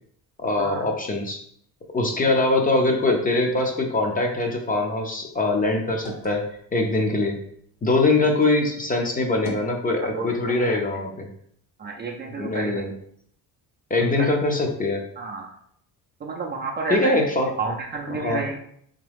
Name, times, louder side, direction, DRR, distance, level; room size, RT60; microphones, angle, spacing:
voice 1, 0.4-1.4 1.9-6.5 6.7-7.4 7.8-11.3 12.3-12.9 13.9-15.0 16.9-17.5 18.1-18.4, left 2 dB, 20° left, 2 dB, 0.6 m, -22 dB
sound 1, 5.3-8.5 8.9-9.8, equal, 45° left, 1.0 m, -43 dB
voice 2, 10.1-10.8 11.8-12.8 14.2-14.3 15.2-15.5 16.2-17.2 17.6-18.6, right 4 dB, 25° right, -1 dB, 0.4 m, -30 dB
3.6 x 3.3 x 3.4 m, 0.66 s
cardioid pair, 140°, 39 cm